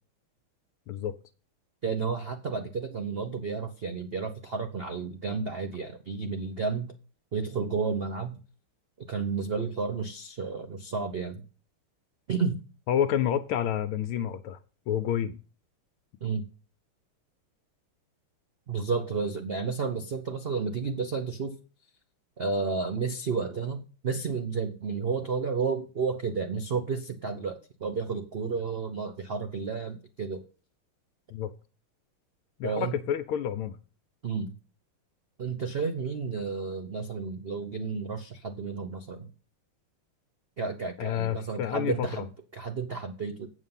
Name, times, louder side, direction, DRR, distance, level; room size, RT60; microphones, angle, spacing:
voice 1, 1.8-6.9 7.3-8.4 9.1-11.4 12.3-12.6 16.2-16.4 18.7-21.6 22.4-30.4 32.6-33.0 34.2-34.5 35.4-39.3 40.6-42.3 42.5-43.5, right 5 dB, 85° right, 7 dB, 0.5 m, -31 dB
voice 2, 12.9-14.6 14.9-15.4 31.3-31.5 32.6-33.8 41.0-42.2, left 9 dB, 80° left, 8 dB, 1.5 m, -29 dB
8.2 x 7.4 x 5.6 m, 0.37 s
omnidirectional pair, 2.4 m